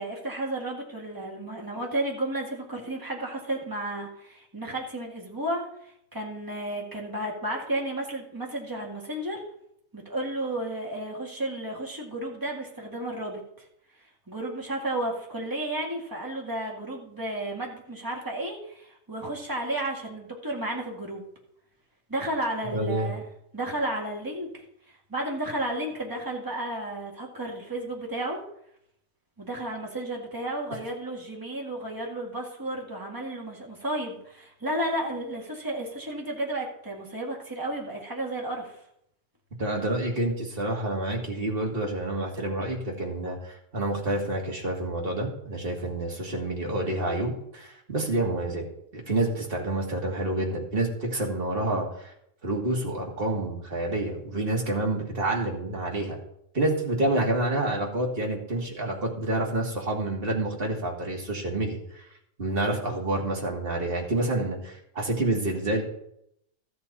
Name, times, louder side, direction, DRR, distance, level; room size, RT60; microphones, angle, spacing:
voice 1, 0.0-9.4 9.9-13.4 14.3-21.3 22.1-23.2 23.5-24.5 25.1-28.4 29.4-38.7, right 1 dB, 10° right, -2 dB, 2.0 m, -32 dB
voice 2, 22.7-23.1 39.6-48.6 48.9-52.1 52.4-56.2 56.5-62.0 62.4-65.8, right 1 dB, 35° right, -1 dB, 2.2 m, -28 dB
13.5 x 7.8 x 4.2 m, 0.75 s
omnidirectional pair, 1.8 m